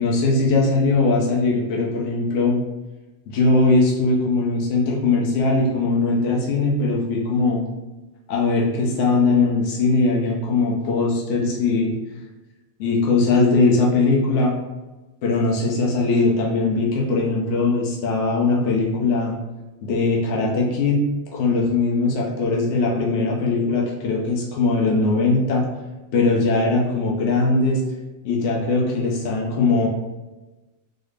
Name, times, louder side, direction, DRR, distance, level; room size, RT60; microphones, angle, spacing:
voice 1, 0.0-2.6 3.3-7.6 8.3-11.9 12.8-14.5 15.2-19.3 19.8-21.0 21.3-25.7 26.1-27.8 28.2-29.9, left 3 dB, 60° left, -3 dB, 0.9 m, -20 dB
3.9 x 2.0 x 3.2 m, 1.1 s
omnidirectional pair, 1.5 m